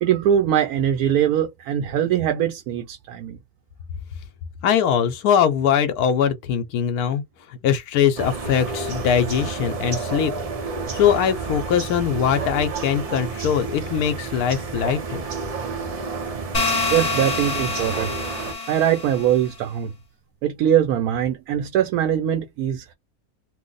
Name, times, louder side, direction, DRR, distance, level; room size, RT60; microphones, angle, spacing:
voice 1, 0.0-3.4 16.9-18.1 18.7-19.9 20.4-22.9, right 10 dB, 85° right, 1.1 m, -22 dB
voice 2, 4.6-10.3 10.9-15.2, left 8 dB, 85° left, 1.1 m, -21 dB
sound 1, 8.2-18.5, right 4 dB, 60° right, 0.3 m, -30 dB
sound 2, 16.5-19.4, left 3 dB, 35° left, 0.7 m, -26 dB
2.7 x 2.0 x 3.8 m
omnidirectional pair, 1.6 m